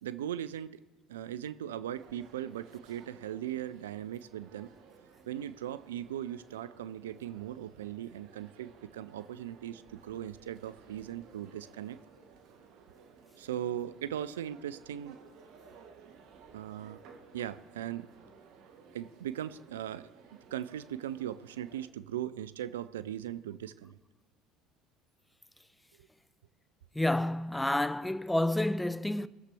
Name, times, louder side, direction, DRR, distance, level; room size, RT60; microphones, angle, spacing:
voice 1, 0.0-0.8 1.1-4.7 5.3-12.0 13.4-15.2 16.5-17.0 17.3-18.1 18.9-24.0, right 11 dB, 80° right, 0.4 m, -39 dB
sound 1, 1.9-21.9, right 6 dB, 65° right, 1.2 m, -57 dB
voice 2, 26.9-29.3, left 1 dB, 5° left, 0.5 m, -29 dB
19.5 x 7.3 x 3.4 m
hypercardioid pair, 65°, 0 cm